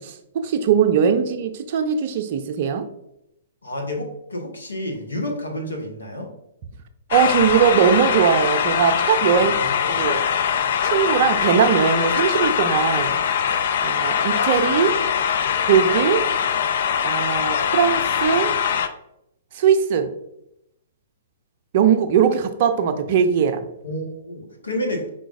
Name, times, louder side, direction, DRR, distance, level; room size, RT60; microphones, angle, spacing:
voice 1, 0.0-2.8 7.1-9.5 9.9-10.2 10.8-13.2 13.8-14.9 15.6-16.3 17.0-18.5 19.5-20.1 21.7-23.7, right 7 dB, 45° right, 8 dB, 0.5 m, -20 dB
voice 2, 3.6-6.3 9.3-10.0 23.8-25.1, left 1 dB, 80° left, 2 dB, 1.0 m, -30 dB
sound 1, 7.1-18.9, left 8 dB, 55° left, 0.3 m, -22 dB
4.8 x 3.8 x 2.5 m, 0.81 s
figure-of-eight pair, 115°, 0 cm